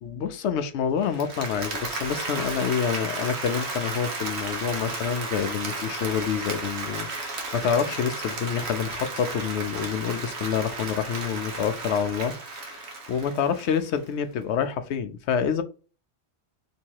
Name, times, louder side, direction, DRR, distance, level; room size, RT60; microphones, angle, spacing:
voice 1, 0.0-15.6, left 7 dB, 85° left, 9 dB, 0.9 m, -27 dB
Applause, 1.0-14.0, right 3 dB, 75° right, 1.1 m, -34 dB
3.1 x 2.8 x 4.5 m, 0.35 s
omnidirectional pair, 1.1 m